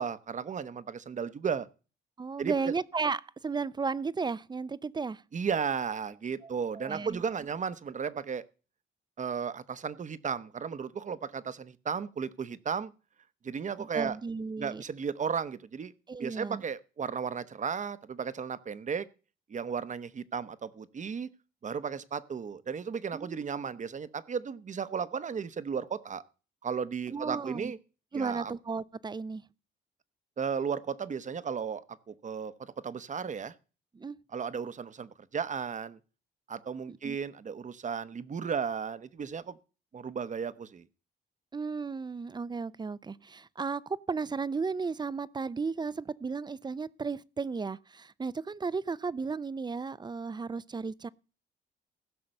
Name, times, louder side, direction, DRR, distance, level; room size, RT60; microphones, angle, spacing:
voice 1, 0.0-1.7 2.4-2.7 5.3-8.4 9.2-12.9 13.4-14.2 14.6-15.9 16.2-19.1 19.5-21.3 21.6-26.2 26.6-27.8 28.1-28.5 30.4-33.5 34.3-36.0 36.5-39.6 39.9-40.8, right 6 dB, 40° right, 0.9 m, -34 dB
voice 2, 2.2-5.2 6.4-6.5 6.7-7.2 13.8-14.8 16.1-16.6 23.1-23.7 27.1-27.7 28.1-29.4 33.9-34.2 36.9-37.2 41.5-51.1, right 4 dB, 20° right, 0.5 m, -34 dB
15.5 x 5.8 x 6.6 m
cardioid pair, 90°, 20 cm